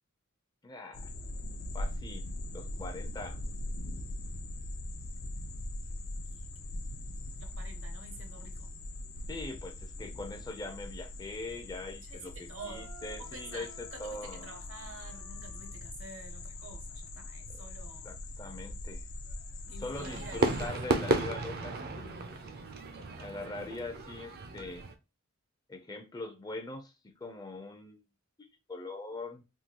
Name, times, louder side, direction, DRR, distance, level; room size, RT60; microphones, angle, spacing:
voice 1, 0.6-1.1 1.7-3.4 9.3-14.5 17.5-17.6 18.0-19.0 19.8-22.2 23.2-24.9 25.7-28.0 28.7-29.4, left 2 dB, 20° left, 0.5 m, -42 dB
sound 1, 0.9-20.7, left 1 dB, 70° left, 0.5 m, -41 dB
voice 2, 7.4-8.7 12.0-12.9 13.2-18.1 19.6-20.9, right 3 dB, 70° right, 0.8 m, -49 dB
Wind instrument woodwind instrument, 12.6-15.8, right 2 dB, 85° right, 1.5 m, -55 dB
Fireworks, 19.9-24.9, right 3 dB, 50° right, 0.5 m, -33 dB
3.6 x 2.3 x 2.9 m
head